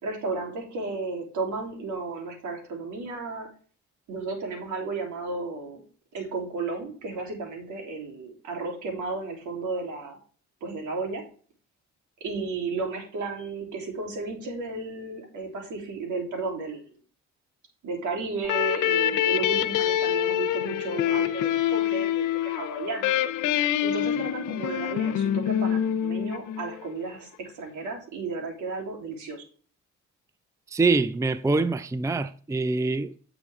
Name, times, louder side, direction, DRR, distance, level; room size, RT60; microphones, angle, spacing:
voice 1, 0.0-3.5 4.1-5.8 6.1-10.2 10.6-11.2 12.2-16.9 17.8-23.2 23.8-29.4, right 3 dB, 75° right, 3.3 m, -33 dB
sound 1, 18.4-26.9, left 10 dB, 90° left, 0.7 m, -26 dB
voice 2, 30.7-33.2, right 3 dB, 10° right, 0.5 m, -24 dB
8.4 x 6.9 x 3.6 m
cardioid pair, 90°, 30 cm